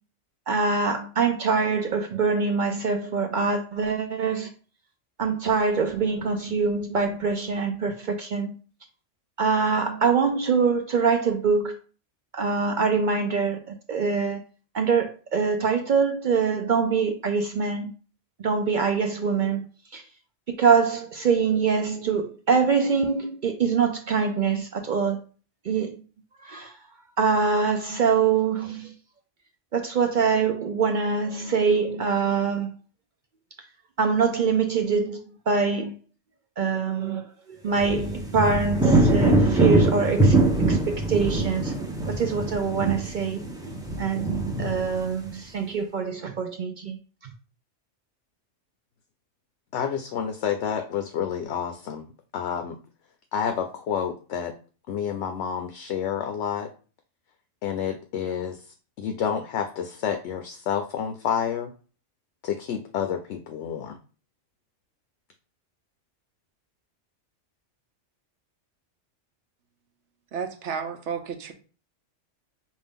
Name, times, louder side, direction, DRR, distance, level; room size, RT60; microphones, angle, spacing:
voice 1, 0.5-4.5 5.2-8.5 9.4-11.7 12.3-14.4 14.7-17.9 18.4-19.6 19.9-20.0 20.6-25.2 25.6-26.0 26.4-26.7 27.2-28.9 29.7-32.7 34.0-35.2 35.5-36.0 36.6-41.7 42.1-43.4 44.0-44.3 44.6-47.0 47.2-47.3, right 5 dB, 55° right, 0.5 m, -24 dB
sound 1, 37.7-45.3, right 2 dB, 5° right, 0.7 m, -23 dB
voice 2, 49.7-52.0 52.3-52.7 53.3-54.5 54.9-56.7 57.6-58.6 59.0-61.7 62.4-64.0, left 8 dB, 70° left, 0.8 m, -29 dB
voice 3, 70.3-71.5, right 6 dB, 75° right, 1.0 m, -32 dB
5.3 x 2.5 x 3.5 m
omnidirectional pair, 1.3 m